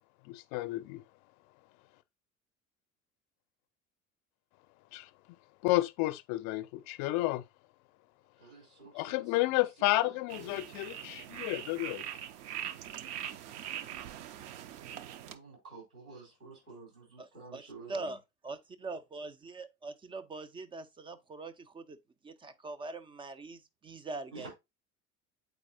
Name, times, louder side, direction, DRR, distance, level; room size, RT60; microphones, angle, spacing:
voice 1, 0.3-0.8 4.9-5.1 5.6-7.4 8.9-12.0, left 18 dB, 45° left, 0.6 m, -31 dB
voice 2, 8.4-9.6 10.0-10.8 15.2-18.2 24.3-24.5, right 3 dB, 85° right, 4.4 m, -51 dB
sound 1, 10.3-15.3, right 10 dB, 55° right, 0.7 m, -42 dB
voice 3, 17.2-17.6 17.9-18.2 18.4-22.0 22.2-24.5, right 3 dB, 15° right, 0.4 m, -42 dB
8.0 x 4.6 x 2.6 m
figure-of-eight pair, 65°, 43 cm